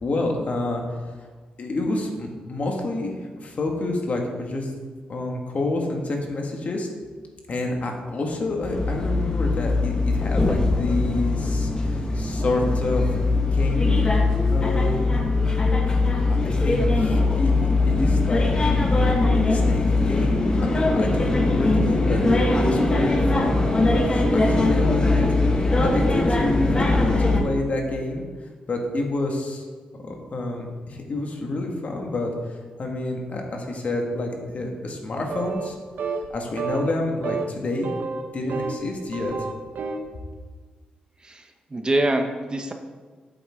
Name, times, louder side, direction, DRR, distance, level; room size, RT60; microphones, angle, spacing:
voice 1, 0.0-0.8 1.6-4.7 5.1-6.9 7.5-13.2 13.5-15.2 16.3-23.6 23.9-25.3 25.8-28.2 28.7-29.6 29.9-35.8 36.3-37.9 38.2-39.3, left 2 dB, 50° left, 1 dB, 1.8 m, -28 dB
sound 1, 8.6-27.4, left 2 dB, 25° left, 1.3 m, -21 dB
sound 2, 35.3-35.7 36.0-36.3 36.6-36.9 37.2-37.5 37.8-38.8 39.1-40.1, right 4 dB, 75° right, 0.9 m, -30 dB
voice 2, 41.2-42.7, right 1 dB, 30° right, 5 dB, 0.9 m, -25 dB
8.1 x 7.9 x 3.7 m, 1.5 s
cardioid pair, 65°, 3 cm